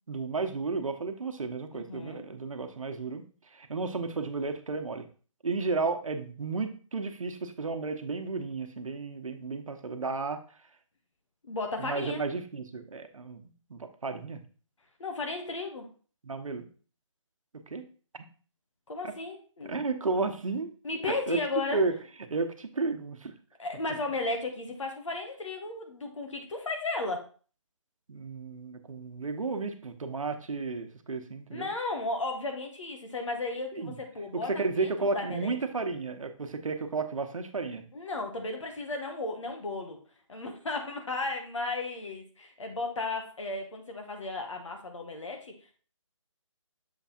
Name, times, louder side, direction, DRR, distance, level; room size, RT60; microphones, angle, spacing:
voice 1, 0.1-3.2 3.5-5.1 5.4-10.4 11.8-14.4 16.2-16.7 17.7-17.8 19.0-19.1 19.6-20.7 21.0-21.4 21.7-21.9 22.2-23.3 28.1-31.7 33.7-34.0 34.3-37.9, right 4 dB, 80° right, 7 dB, 1.0 m, -33 dB
voice 2, 1.7-2.2 11.4-12.3 15.0-15.9 18.9-19.8 20.8-21.8 23.6-27.2 31.5-35.6 37.9-40.0 40.3-45.5, left 3 dB, 70° left, 3 dB, 1.8 m, -34 dB
6.9 x 3.5 x 4.3 m, 0.39 s
hypercardioid pair, 170°, 17 cm